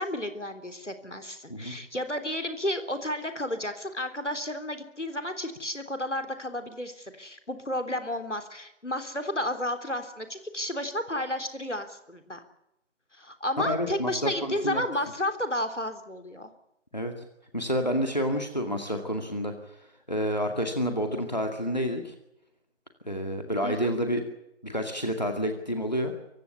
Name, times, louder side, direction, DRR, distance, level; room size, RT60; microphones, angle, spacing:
voice 1, 0.0-12.4 13.1-16.5 23.6-23.9, left 1 dB, 70° left, 8 dB, 3.6 m, -32 dB
voice 2, 13.6-14.8 16.9-17.1 17.5-19.5 20.1-22.1 23.1-24.2 24.6-26.1, equal, 35° left, 4 dB, 2.2 m, -29 dB
24.5 x 16.0 x 9.9 m, 0.87 s
figure-of-eight pair, 180°, 37 cm